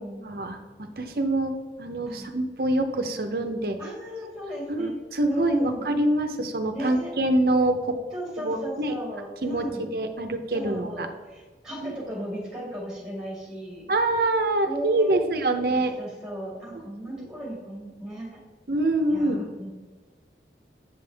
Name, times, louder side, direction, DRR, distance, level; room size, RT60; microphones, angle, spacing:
voice 1, 0.3-1.5 1.8-3.8 4.7-8.0 8.4-8.9 9.4-11.1 11.8-11.9 13.9-15.9 17.1-17.3 18.7-19.4, right 2 dB, 55° right, 6 dB, 0.7 m, -25 dB
voice 2, 3.8-5.0 5.3-5.9 6.7-7.1 8.1-9.9 10.5-13.9 14.6-15.4 15.7-18.4 19.1-19.7, equal, 5° right, -6 dB, 2.4 m, -36 dB
8.4 x 5.4 x 3.4 m, 1.4 s
head